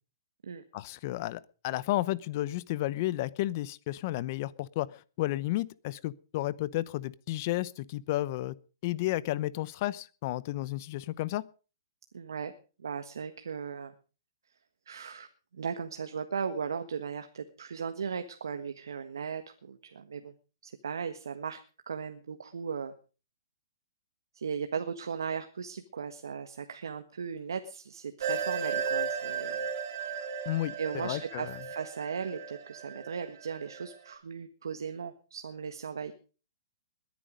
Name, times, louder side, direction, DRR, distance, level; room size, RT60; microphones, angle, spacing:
voice 1, 0.7-8.5 8.8-11.5 30.4-31.5, left 16 dB, 45° left, 20 dB, 0.8 m, -32 dB
voice 2, 12.1-12.5 12.8-13.9 14.9-15.3 15.5-20.3 20.6-21.6 21.9-22.9 24.3-29.7 30.8-36.1, right 6 dB, 85° right, 8 dB, 1.5 m, -37 dB
sound 1, 28.2-33.9, right 6 dB, 55° right, 3.5 m, -35 dB
21.0 x 9.5 x 5.2 m, 0.37 s
hypercardioid pair, 145°, 2 cm